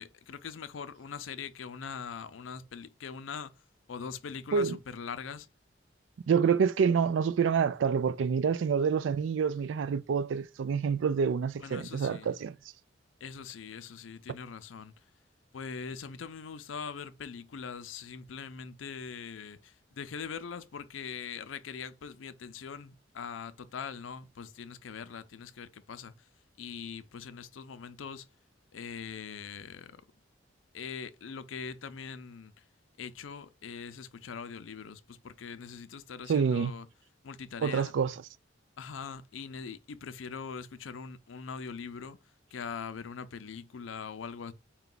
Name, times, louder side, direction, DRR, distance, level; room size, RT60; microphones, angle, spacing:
voice 1, 0.0-3.5 3.9-5.5 11.6-12.3 13.2-14.9 15.5-26.1 26.6-28.3 28.7-30.0 30.7-32.5 33.0-36.9 37.2-37.9 38.8-42.2 42.5-44.5, left 6 dB, 85° left, 0.5 m, -42 dB
voice 2, 6.3-12.5 36.3-36.7 37.6-38.1, right 6 dB, 70° right, 0.3 m, -27 dB
4.6 x 2.2 x 3.8 m
head